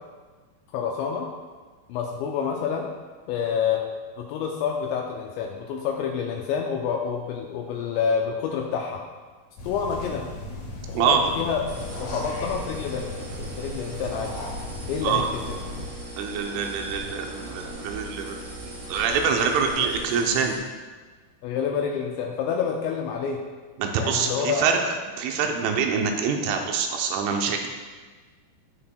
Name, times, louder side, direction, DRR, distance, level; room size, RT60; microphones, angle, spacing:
voice 1, 0.7-1.3 1.9-2.9 3.3-3.8 4.2-9.0 9.6-10.3 10.9-11.6 12.0-14.3 14.9-15.6 19.8-19.9 21.4-23.4 24.0-24.6, left 7 dB, 85° left, 1 dB, 2.6 m, -28 dB
sound 1, 9.6-15.9, left 1 dB, 60° left, 2.4 m, -37 dB
sound 2, 11.7-20.6, right 1 dB, 65° right, 1.7 m, -39 dB
voice 2, 16.2-18.4 18.9-20.6 23.8-27.7, right 6 dB, 80° right, 3 dB, 3.2 m, -25 dB
17.5 x 5.8 x 2.2 m, 1.4 s
omnidirectional pair, 5.7 m